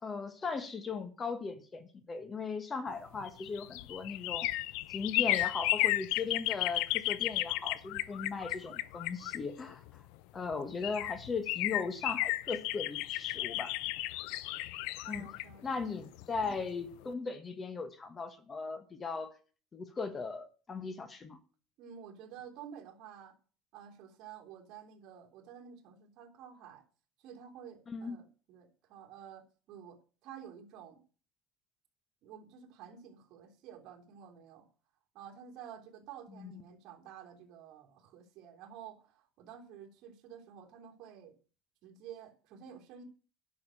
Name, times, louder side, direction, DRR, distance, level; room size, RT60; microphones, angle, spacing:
voice 1, 0.0-4.5 4.9-10.0 10.3-13.7 15.1-15.3 15.6-19.3 19.7-21.4 27.9-28.2 36.3-36.6, left 4 dB, 25° left, 12 dB, 1.4 m, -38 dB
sound 1, 3.1-10.0 10.5-10.6 10.8-16.6 16.9-17.0, left 17 dB, 75° left, 0.6 m, -34 dB
voice 2, 15.0-15.9 16.4-16.6 21.8-23.4 23.7-26.8 27.2-31.0 32.2-34.7 35.1-41.3 41.8-43.0, right 8 dB, 55° right, 3 dB, 3.3 m, -51 dB
11.0 x 6.4 x 8.9 m, 0.38 s
cardioid pair, 135°, 0 cm